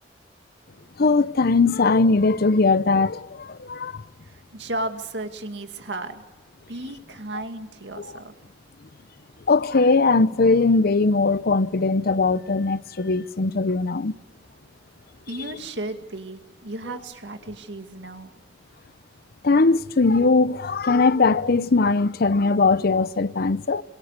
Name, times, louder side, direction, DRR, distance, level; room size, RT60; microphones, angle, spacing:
voice 1, 1.0-4.0 8.0-8.1 9.5-14.1 19.4-23.8, left 3 dB, 55° left, 0.7 m, -20 dB
voice 2, 4.2-6.2 6.7-8.3 15.3-18.3, right 2 dB, 70° right, 2.3 m, -34 dB
27.0 x 22.5 x 6.7 m
head